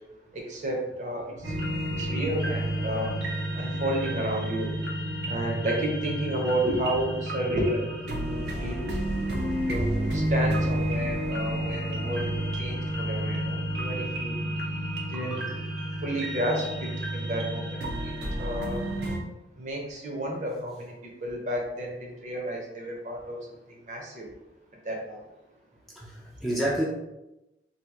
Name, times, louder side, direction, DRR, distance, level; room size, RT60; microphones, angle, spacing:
voice 1, 0.3-1.5 1.9-3.1 3.5-4.7 5.3-7.9 8.2-8.9 9.7-14.4 15.1-15.6 16.0-18.1 18.4-18.9 19.6-23.4 23.9-24.3 24.8-25.2, right 1 dB, 45° right, 0 dB, 0.7 m, -31 dB
sound 1, 1.4-19.2, right 1 dB, 75° right, 0.7 m, -30 dB
voice 2, 15.1-15.5 26.0-26.8, right 1 dB, ahead, -5 dB, 0.4 m, -30 dB
2.8 x 2.5 x 3.5 m, 0.95 s
head